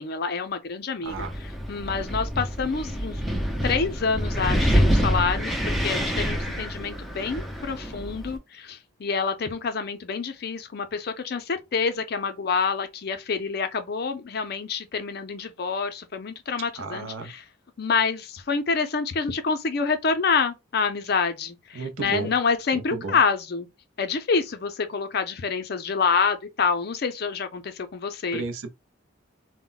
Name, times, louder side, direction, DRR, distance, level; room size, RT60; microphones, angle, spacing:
voice 1, 0.0-1.3 1.7-3.3 3.6-17.4 17.8-23.7 24.0-28.4, left 5 dB, 50° left, 0.5 m, -27 dB
voice 2, 1.0-1.3 16.8-17.3 21.7-22.3 22.7-23.2 28.3-28.7, right 4 dB, 75° right, 0.6 m, -33 dB
Wind, 1.1-8.4, equal, ahead, 0.4 m, -26 dB
2.1 x 2.1 x 3.8 m
head